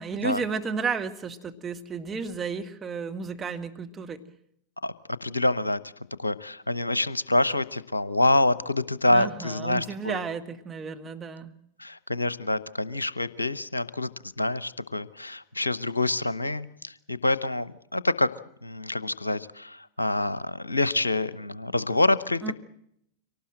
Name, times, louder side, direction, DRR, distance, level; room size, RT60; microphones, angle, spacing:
voice 1, 0.0-4.2 9.1-11.5 22.4-22.5, right 5 dB, 20° right, 4 dB, 1.8 m, -33 dB
voice 2, 5.2-5.8 6.2-10.2 11.8-14.1 14.4-18.3 18.6-22.5, left 2 dB, 85° left, 17 dB, 0.8 m, -26 dB
24.5 x 18.5 x 7.7 m, 0.74 s
figure-of-eight pair, 90°, 0 cm